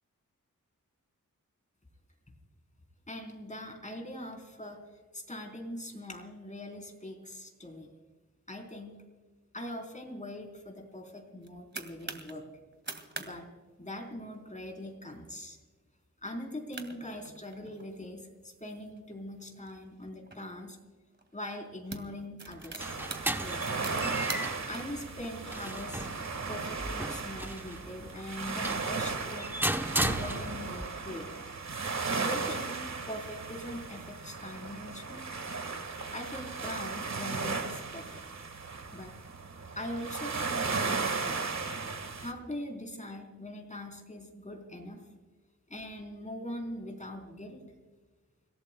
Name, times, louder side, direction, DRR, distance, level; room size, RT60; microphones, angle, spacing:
voice 1, 3.1-4.8 5.1-7.9 8.5-9.0 9.5-12.4 13.2-13.5 13.8-15.6 16.2-20.8 21.3-23.0 23.4-24.1 24.7-26.1 26.5-29.5 30.0-31.5 32.1-35.2 36.1-38.2 38.9-39.2 39.8-41.4 42.2-45.0 45.7-47.6, left 1 dB, 25° left, 2 dB, 3.9 m, -42 dB
sound 1, 11.2-12.3 12.7-13.3 13.6-13.7 14.0-14.4 14.9-15.1 15.6-15.7 16.4-16.5 16.7-17.9 18.5-20.4 21.1-21.3 21.7-24.8, right 3 dB, 35° right, 2.0 m, -44 dB
sound 2, 22.5-30.9, right 1 dB, 5° right, 0.9 m, -36 dB
sound 3, 22.8-42.3, right 4 dB, 55° right, 1.7 m, -36 dB
30.0 x 17.0 x 2.2 m, 1.4 s
wide cardioid pair, 90°, 32 cm